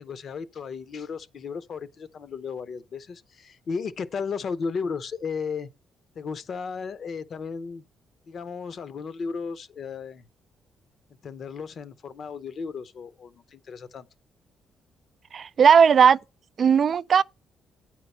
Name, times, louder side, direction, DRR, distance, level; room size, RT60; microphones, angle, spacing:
voice 1, 0.0-5.7 6.1-7.8 8.3-10.2 11.2-14.1, left 5 dB, 55° left, 0.8 m, -34 dB
voice 2, 15.3-16.2 16.6-17.2, right 7 dB, 50° right, 0.3 m, -17 dB
8.8 x 4.6 x 5.4 m
cardioid pair, 90°, 0 cm